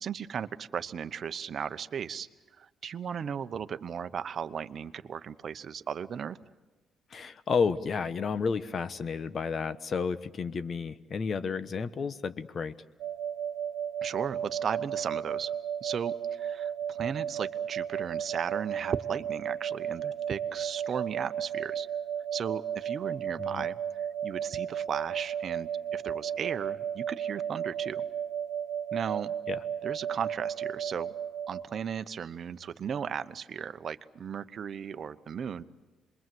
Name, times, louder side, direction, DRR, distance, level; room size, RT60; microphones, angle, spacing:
voice 1, 0.0-2.3 2.6-6.4 14.0-15.6 15.8-21.9 22.3-28.0 28.9-29.3 29.8-31.1 31.5-35.6, right 7 dB, 55° right, 11 dB, 0.9 m, -36 dB
voice 2, 7.1-12.7 23.4-23.7 29.5-29.6, left 5 dB, 45° left, 13 dB, 1.1 m, -31 dB
sound 1, 13.0-31.6, right 9 dB, 75° right, 1.4 m, -34 dB
27.0 x 22.0 x 7.8 m, 1.2 s
cardioid pair, 90°, 0 cm